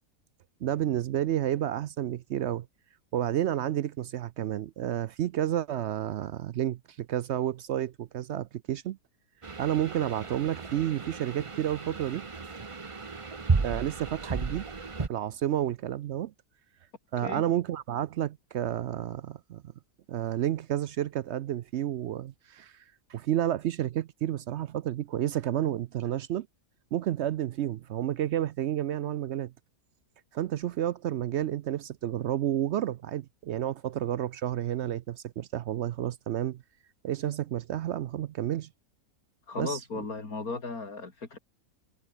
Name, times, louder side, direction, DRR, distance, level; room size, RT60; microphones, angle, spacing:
voice 1, 0.6-2.7 3.1-9.0 9.6-12.3 13.6-14.7 15.0-16.3 17.1-19.6 20.1-22.8 23.1-26.5 26.9-29.5 30.3-36.6 37.0-38.7 39.6-39.8, right 11 dB, 65° right, 0.7 m, -30 dB
sound 1, 9.4-15.1, right 4 dB, 25° right, 0.9 m, -33 dB
voice 2, 39.5-41.4, left 3 dB, 90° left, 3.8 m, -36 dB
omnidirectional pair, 1.5 m